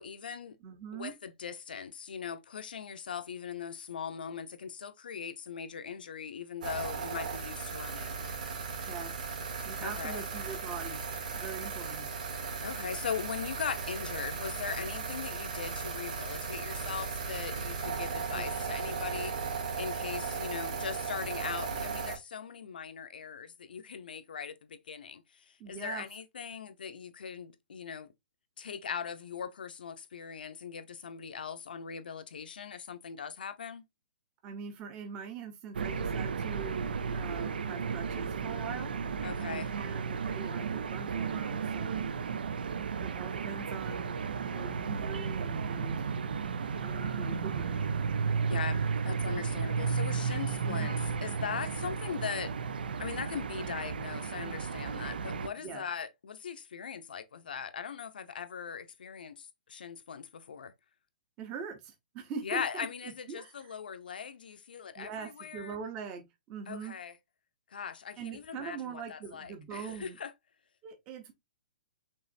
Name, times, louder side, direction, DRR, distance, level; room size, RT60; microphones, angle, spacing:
voice 1, 0.0-0.6 0.9-8.2 9.8-10.2 12.6-19.3 19.7-28.1 28.6-33.8 39.2-39.7 48.5-52.5 53.0-60.7 62.4-65.8 66.7-67.1 67.7-70.3, left 7 dB, 75° left, 0.8 m, -40 dB
voice 2, 0.6-1.1 8.9-9.1 9.6-11.0 11.4-12.1 18.3-18.6 20.2-20.3 25.6-26.1 34.4-38.9 39.7-42.0 43.0-46.1 46.7-47.8 50.5-50.9 55.6-55.8 61.4-62.9 63.3-63.8 65.0-67.0 68.2-70.2 70.8-71.3, right 6 dB, 15° right, 0.7 m, -42 dB
sound 1, 6.6-22.2, right 5 dB, 55° right, 1.7 m, -37 dB
sound 2, 35.7-55.5, right 5 dB, 85° right, 0.6 m, -33 dB
5.5 x 3.1 x 2.6 m
hypercardioid pair, 175°, 5 cm